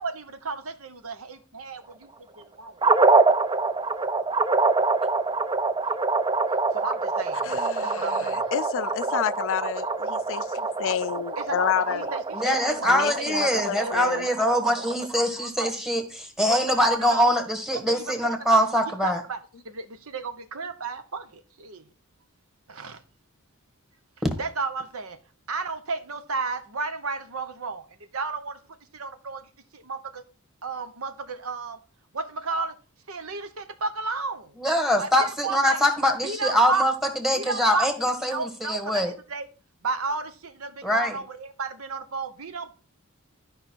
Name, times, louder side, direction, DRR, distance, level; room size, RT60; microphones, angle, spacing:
voice 1, 0.0-1.8 2.6-2.7 6.7-7.5 7.8-8.5 11.4-12.9 13.3-13.9 14.6-14.7 15.1-15.7 16.4-17.3 17.7-18.6 18.9-19.4 19.6-21.8 22.7-23.0 24.4-25.2 25.5-27.9 28.1-28.6 28.9-30.2 30.6-31.8 32.1-32.7 33.1-34.6 35.0-35.8 36.2-36.9 37.3-39.4 39.8-42.7, right 4 dB, 70° right, 1.1 m, -33 dB
sound 1, 2.8-15.1, right 3 dB, 20° right, 0.5 m, -25 dB
voice 2, 7.4-10.5 10.8-12.1 12.9-14.3, left 8 dB, 60° left, 0.4 m, -29 dB
voice 3, 12.3-19.2 34.6-36.9 37.2-39.1 40.8-41.2, equal, ahead, 1.5 m, -23 dB
12.0 x 5.4 x 4.5 m
head